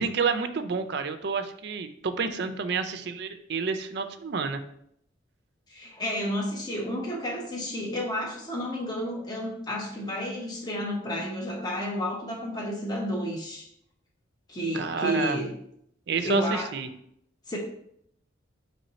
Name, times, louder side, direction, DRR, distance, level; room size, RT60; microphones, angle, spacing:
voice 1, 0.0-4.6 14.7-15.4 16.1-16.9, right 5 dB, 55° right, 9 dB, 0.4 m, -29 dB
voice 2, 5.7-13.7 14.5-15.5 16.2-16.7 17.5-17.6, equal, 20° left, -1 dB, 0.7 m, -31 dB
4.2 x 3.1 x 4.0 m, 0.70 s
head